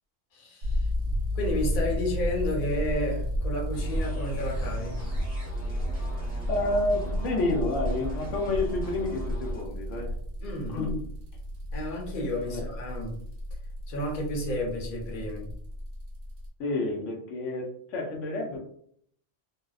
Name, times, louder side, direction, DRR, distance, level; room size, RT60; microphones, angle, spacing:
voice 1, 0.3-0.9 1.3-5.0 10.4-10.8 11.7-13.2 13.9-15.5, left 1 dB, 50° left, -1 dB, 0.8 m, -32 dB
sound 1, 0.6-16.5, equal, 65° right, 0.8 m, -33 dB
sound 2, 3.7-9.6, equal, 10° left, 0.7 m, -38 dB
voice 2, 6.5-10.2 10.7-11.1 12.5-12.6 16.6-18.6, left 2 dB, 85° left, 0 dB, 1.0 m, -29 dB
2.7 x 2.0 x 2.3 m, 0.63 s
omnidirectional pair, 1.2 m